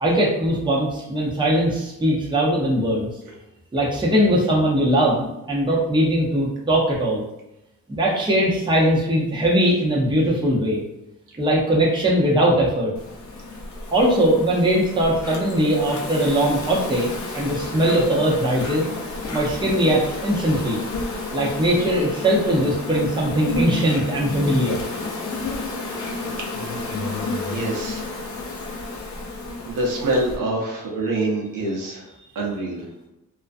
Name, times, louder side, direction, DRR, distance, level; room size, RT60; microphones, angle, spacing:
voice 1, 0.0-3.1 3.7-7.2 7.9-10.8 11.4-12.9 13.9-18.8 19.3-20.8 21.3-24.8, right 1 dB, 15° right, -3 dB, 0.6 m, -20 dB
Insect, 13.0-30.4, left 2 dB, 60° left, 0.6 m, -31 dB
voice 2, 26.5-27.1 27.5-28.1 29.6-32.9, right 2 dB, 70° right, -1 dB, 0.7 m, -26 dB
2.4 x 2.1 x 2.5 m, 0.92 s
cardioid pair, 95°, 33 cm